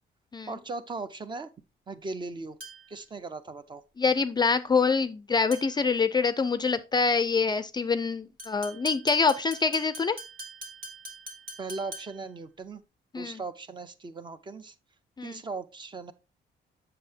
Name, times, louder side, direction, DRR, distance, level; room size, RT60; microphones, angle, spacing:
voice 1, 0.5-1.5 1.9-2.6 2.9-3.8 11.6-12.8 13.2-14.7 15.2-16.1, right 3 dB, 25° right, 0.5 m, -38 dB
sound 1, 2.6-3.0 5.5-5.9 8.4-12.3, right 1 dB, 55° right, 2.0 m, -44 dB
voice 2, 4.0-10.2 13.1-13.4 15.2-15.4, left 5 dB, 25° left, 0.4 m, -25 dB
7.6 x 6.5 x 2.7 m
cardioid pair, 135°, 18 cm